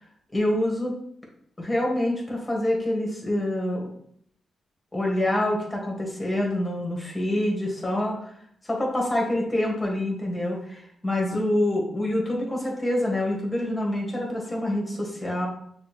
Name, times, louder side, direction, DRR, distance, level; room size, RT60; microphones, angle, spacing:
voice 1, 0.3-0.9 1.6-3.8 4.9-8.3 8.7-15.5, left 1 dB, 20° left, -1 dB, 1.8 m, -26 dB
6.1 x 2.5 x 3.2 m, 0.67 s
supercardioid pair, 45°, 0 cm